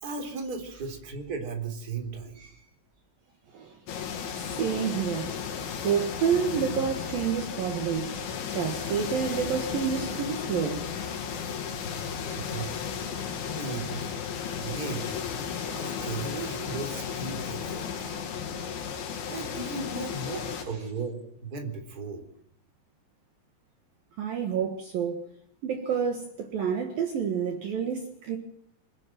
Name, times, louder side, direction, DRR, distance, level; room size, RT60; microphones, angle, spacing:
voice 1, 0.0-2.5 12.3-12.7 13.0-13.1 13.5-14.1 14.6-15.3 15.7-17.9 19.3-22.2, right 4 dB, 20° right, 3.4 m, -36 dB
sound 1, 3.9-20.7, left 7 dB, 85° left, 4.8 m, -34 dB
voice 2, 4.6-5.3 5.8-8.2 8.5-10.8 15.6-15.8 18.0-18.1 24.2-25.2 25.6-28.4, right 7 dB, 60° right, 3.1 m, -29 dB
27.0 x 11.0 x 9.2 m
omnidirectional pair, 5.2 m